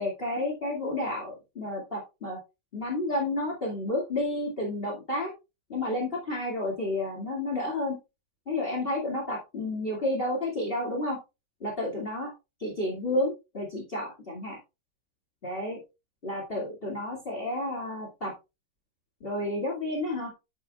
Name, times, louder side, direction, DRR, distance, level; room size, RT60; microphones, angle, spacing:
voice 1, 0.0-2.4 2.7-5.3 5.7-8.0 8.5-11.2 11.6-12.3 12.6-14.6 15.4-15.8 16.2-18.3 19.2-20.3, left 1 dB, 30° left, 0 dB, 2.3 m, -31 dB
9.0 x 8.2 x 2.3 m, 0.26 s
omnidirectional pair, 1.9 m